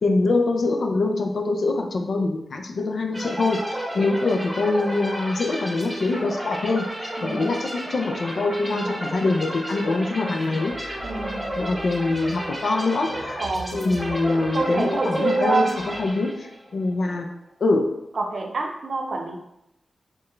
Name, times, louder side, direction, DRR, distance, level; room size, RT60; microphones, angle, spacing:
voice 1, 0.0-11.0 11.6-13.4 13.7-17.3 17.6-17.9, left 3 dB, 70° left, 4 dB, 0.5 m, -24 dB
sound 1, 3.1-16.7, equal, 10° right, 1.1 m, -33 dB
voice 2, 7.2-7.6 8.7-9.1 11.0-11.7 13.4-13.9 14.5-15.8 18.2-19.4, right 3 dB, 65° right, 3 dB, 0.5 m, -27 dB
sound 2, 10.7-16.1, equal, 55° left, 1.0 m, -43 dB
4.4 x 2.3 x 3.1 m, 0.85 s
cardioid pair, 60°, 0 cm